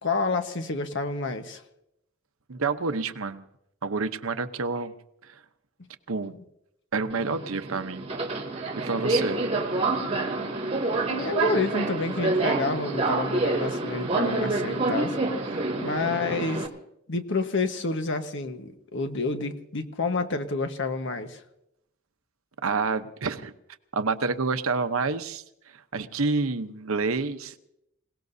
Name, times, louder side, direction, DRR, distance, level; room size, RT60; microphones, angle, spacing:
voice 1, 0.0-1.6 11.1-15.2 15.5-16.7 17.1-21.4, left 3 dB, 65° left, 7 dB, 1.3 m, -29 dB
voice 2, 2.5-3.4 3.8-4.9 5.2-5.4 6.1-6.3 6.9-8.1 8.8-9.4 15.5-15.8 22.6-23.5 23.9-27.5, right 4 dB, 85° right, 9 dB, 0.9 m, -28 dB
Subway metro underground, 7.1-16.7, right 2 dB, 30° right, 2.2 m, -28 dB
26.5 x 18.0 x 2.7 m, 0.81 s
head